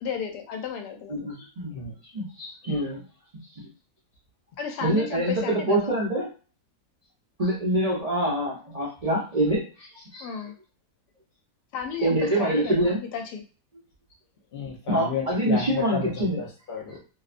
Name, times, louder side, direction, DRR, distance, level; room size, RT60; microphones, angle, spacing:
voice 1, 0.0-1.4 4.6-6.0 10.2-10.5 11.7-13.4, left 7 dB, 85° left, 4 dB, 1.2 m, -34 dB
voice 2, 1.1-1.7 2.1-3.0 3.6-3.7 4.8-6.3 7.4-10.3 12.0-13.0 14.9-16.4, right 1 dB, 65° right, -6 dB, 0.3 m, -25 dB
voice 3, 14.5-17.0, left 5 dB, 65° left, -1 dB, 0.5 m, -32 dB
2.8 x 2.1 x 2.4 m, 0.37 s
omnidirectional pair, 1.7 m